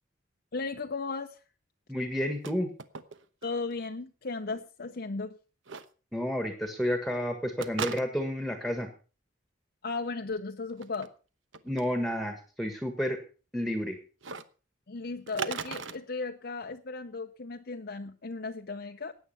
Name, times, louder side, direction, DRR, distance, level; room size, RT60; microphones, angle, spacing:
voice 1, 0.5-1.4 3.4-5.4 9.8-11.1 14.9-19.1, left 3 dB, 50° left, 4 dB, 0.7 m, -36 dB
voice 2, 1.9-2.7 6.1-8.9 11.6-13.2 13.5-14.0, equal, ahead, 6 dB, 1.4 m, -30 dB
sound 1, 2.2-2.5 2.8-3.5 3.7-3.8 5.7-5.9 7.6-8.4 10.7-11.1 11.5-11.9 14.2-14.4 15.3-16.0, right 5 dB, 75° right, 1.0 m, -37 dB
15.5 x 9.5 x 5.6 m, 0.37 s
head